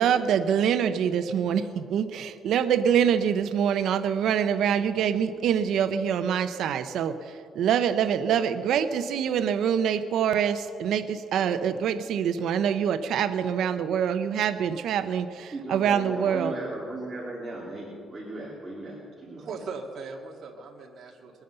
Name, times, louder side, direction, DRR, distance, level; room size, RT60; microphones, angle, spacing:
voice 1, 0.0-16.5, right 8 dB, 70° right, 10 dB, 0.7 m, -25 dB
voice 2, 15.5-19.5, right 2 dB, 15° right, -6 dB, 2.8 m, -37 dB
voice 3, 19.4-21.4, right 4 dB, 50° right, -1 dB, 1.9 m, -39 dB
22.0 x 9.2 x 6.8 m, 2.4 s
cardioid pair, 150°, 0 cm